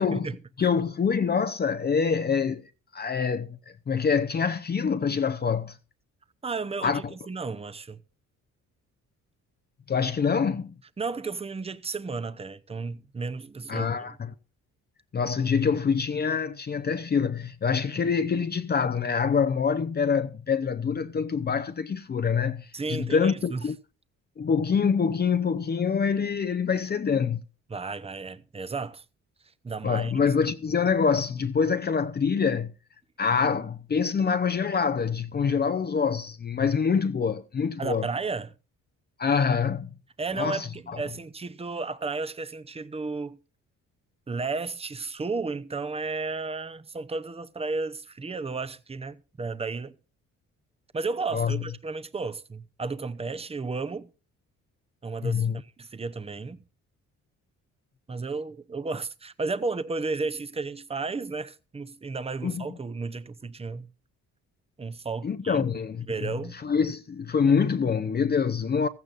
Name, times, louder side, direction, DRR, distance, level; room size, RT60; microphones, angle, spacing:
voice 1, 0.0-0.7 6.4-8.0 11.0-14.2 22.7-23.7 27.7-29.0 29.6-30.1 37.8-38.5 40.2-43.4 44.3-49.9 50.9-54.1 55.0-56.6 58.1-63.9 64.8-65.6 66.1-66.6, right 4 dB, 20° right, 0.8 m, -33 dB
voice 2, 0.6-2.6 2.9-3.6 3.9-5.8 6.8-7.0 9.9-10.7 13.7-14.3 15.1-23.7 24.4-27.4 29.8-32.7 33.2-38.1 39.2-39.9 40.4-41.0 51.3-51.6 55.2-55.6 62.4-62.7 65.2-66.3 66.6-68.9, left 6 dB, 35° left, 0.7 m, -25 dB
15.5 x 14.0 x 2.5 m
cardioid pair, 90°, 30 cm